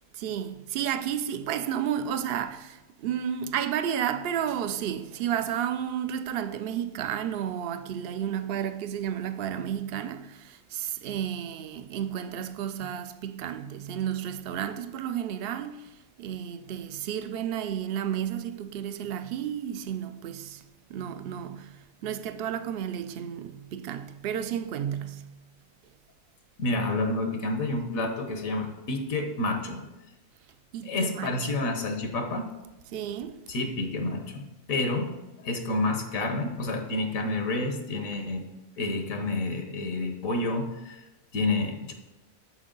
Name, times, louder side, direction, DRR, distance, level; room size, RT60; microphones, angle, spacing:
voice 1, 0.1-15.9 16.2-20.6 20.9-21.7 22.0-25.2 30.7-31.3 32.9-33.4, right 9 dB, 65° right, 0.6 m, -32 dB
voice 2, 26.6-29.8 30.8-32.5 33.5-34.4 34.7-35.1 35.4-38.4 38.8-41.0 41.3-41.9, left 2 dB, 80° left, 1.5 m, -29 dB
12.5 x 4.5 x 3.9 m
omnidirectional pair, 1.4 m